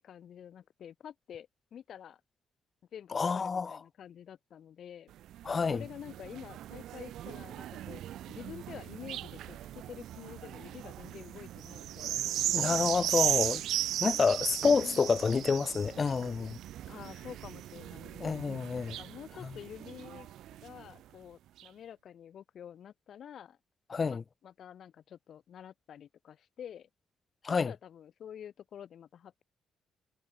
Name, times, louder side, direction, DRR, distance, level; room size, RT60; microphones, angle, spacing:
voice 1, 0.0-2.2 2.9-5.1 5.7-8.0 8.3-12.8 14.3-14.4 14.7-15.1 16.9-18.6 18.9-20.3 20.6-23.6 24.1-26.9 27.5-29.4, left 9 dB, 65° left, 1.9 m, -48 dB
voice 2, 3.1-3.8 5.5-5.8 12.5-13.6 14.0-16.6 18.2-19.0 23.9-24.2 27.4-27.7, left 5 dB, 35° left, 0.4 m, -28 dB
sound 1, 5.1-21.0 21.6-21.7, right 12 dB, 80° right, 0.4 m, -37 dB
cardioid pair, 90°, 0 cm